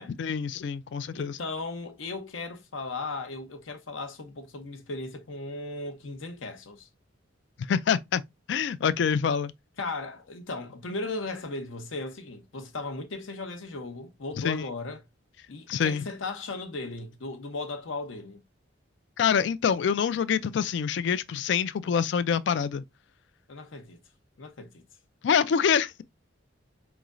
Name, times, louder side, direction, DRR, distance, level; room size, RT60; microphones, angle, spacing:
voice 1, 0.2-1.4 7.6-8.2 8.5-9.5 14.4-14.7 15.7-16.1 19.2-22.8 25.2-26.0, left 7 dB, 60° left, 0.3 m, -26 dB
voice 2, 1.1-6.9 9.8-15.0 15.5-18.4 23.5-24.0 24.4-24.8, left 3 dB, 80° left, 0.8 m, -37 dB
4.6 x 3.1 x 2.5 m
head